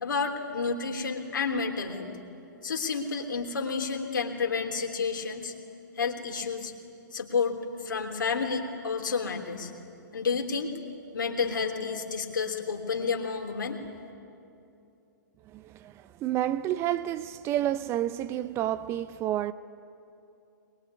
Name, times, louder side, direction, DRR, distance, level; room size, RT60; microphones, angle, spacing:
voice 1, 0.0-2.1 2.6-5.5 6.0-6.7 7.1-7.6 7.8-9.7 10.1-10.7 11.1-13.8, left 5 dB, 75° left, 3.3 m, -30 dB
voice 2, 15.5-15.9 16.2-19.5, right 12 dB, 25° right, 0.6 m, -29 dB
23.0 x 21.5 x 9.9 m
figure-of-eight pair, 125°, 11 cm